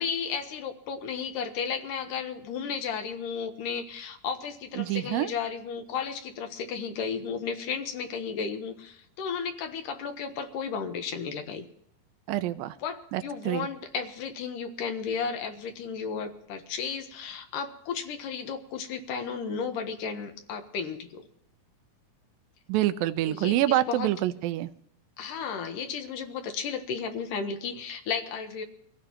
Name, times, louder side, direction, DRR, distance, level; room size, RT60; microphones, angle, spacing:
voice 1, 0.0-11.7 12.8-21.3 23.3-24.1 25.2-28.6, left 6 dB, 70° left, 6 dB, 2.7 m, -34 dB
voice 2, 4.8-5.3 12.3-12.7 13.1-13.7 22.7-24.7, right 14 dB, 80° right, 11 dB, 2.4 m, -26 dB
24.0 x 15.5 x 3.0 m, 0.71 s
omnidirectional pair, 4.1 m